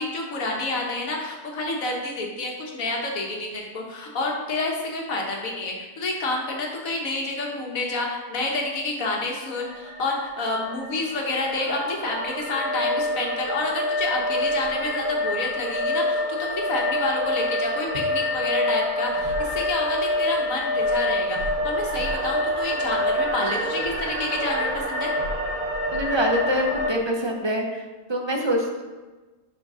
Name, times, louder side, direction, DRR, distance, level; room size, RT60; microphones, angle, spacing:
voice 1, 0.0-21.4 21.6-25.1, left 2 dB, 85° left, 0 dB, 1.6 m, -29 dB
sound 1, 9.5-26.9, left 1 dB, 85° right, 1.4 m, -27 dB
voice 2, 25.9-27.8 28.1-28.8, equal, 25° right, 1 dB, 0.6 m, -24 dB
6.2 x 4.5 x 5.4 m, 1.2 s
omnidirectional pair, 1.4 m